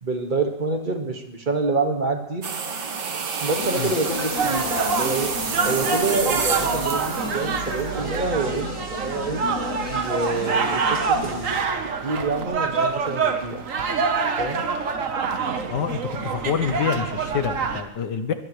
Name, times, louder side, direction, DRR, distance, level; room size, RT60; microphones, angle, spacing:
voice 1, 0.0-2.5 3.4-5.3 5.7-9.4 9.9-11.6 12.0-13.6 14.4-14.6, right 3 dB, 30° right, 4 dB, 1.9 m, -27 dB
sound 1, 2.4-8.2, right 5 dB, 90° right, 2.1 m, -29 dB
Speech, 3.4-11.6, left 3 dB, 60° left, 3.9 m, -35 dB
sound 2, 4.3-17.8, right 5 dB, 50° right, 1.5 m, -26 dB
voice 2, 15.7-18.3, left 7 dB, 85° left, 8 dB, 1.8 m, -27 dB
23.0 x 18.0 x 3.3 m, 0.94 s
omnidirectional pair, 1.8 m